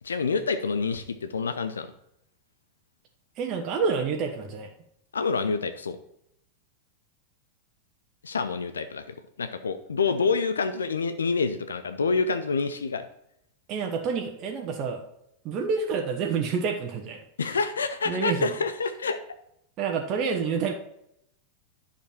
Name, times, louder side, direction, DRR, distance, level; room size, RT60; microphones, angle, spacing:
voice 1, 0.0-1.9 5.1-6.0 8.2-13.0 17.4-19.2, left 4 dB, 70° left, 10 dB, 0.7 m, -27 dB
voice 2, 3.4-4.7 13.7-15.0 15.4-17.6 18.1-18.5 19.8-20.7, right 5 dB, 35° right, 2 dB, 1.3 m, -28 dB
10.0 x 7.2 x 4.3 m, 0.75 s
figure-of-eight pair, 90°, 0 cm